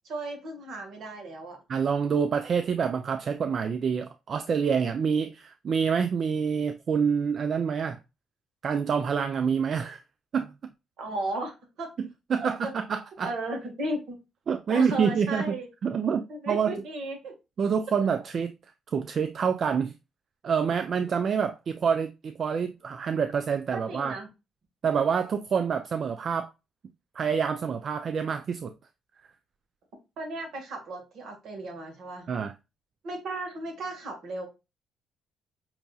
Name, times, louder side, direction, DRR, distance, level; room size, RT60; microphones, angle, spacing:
voice 1, 0.0-1.6 11.0-11.9 12.3-12.7 13.2-14.2 14.7-15.7 16.3-17.3 23.7-24.3 30.2-32.3 33.0-34.5, right 1 dB, 75° right, 1.5 m, -35 dB
voice 2, 1.7-8.0 8.6-10.0 10.3-10.5 12.3-13.3 14.5-15.6 15.8-16.7 17.6-18.5 18.9-19.9 20.4-24.2 24.8-26.5 27.2-28.7 32.3-32.5, right 6 dB, 55° right, 0.3 m, -27 dB
5.8 x 2.7 x 2.3 m
cardioid pair, 90°, 0 cm